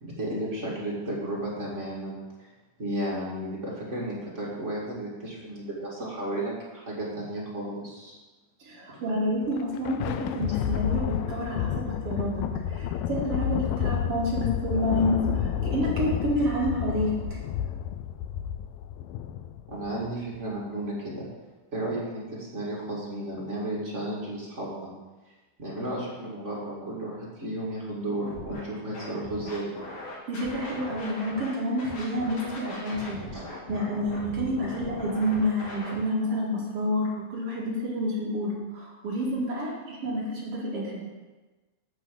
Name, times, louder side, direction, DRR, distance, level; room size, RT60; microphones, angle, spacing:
voice 1, 0.0-2.5 2.8-8.2 19.7-21.3 21.7-24.9 25.6-29.7 33.3-33.4, right 1 dB, 30° right, -5 dB, 1.3 m, -33 dB
voice 2, 8.6-17.4 30.3-33.2 33.7-41.0, equal, 50° right, -4 dB, 2.2 m, -29 dB
Thunder, 9.4-20.2, left 10 dB, 80° left, 2.0 m, -30 dB
Scratching (performance technique), 28.2-28.6 28.9-31.5 31.8-36.0, left 2 dB, 50° left, 3.1 m, -39 dB
9.4 x 4.5 x 7.5 m, 1.2 s
omnidirectional pair, 4.3 m